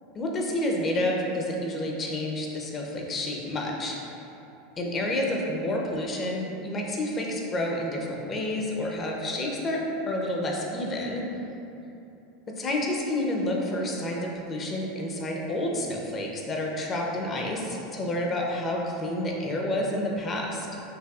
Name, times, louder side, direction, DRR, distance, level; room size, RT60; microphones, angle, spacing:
voice 1, 0.1-4.0 4.8-11.2 12.5-20.7, left 1 dB, 30° left, -1 dB, 0.7 m, -29 dB
6.0 x 2.6 x 2.4 m, 2.9 s
hypercardioid pair, 85°, 0 cm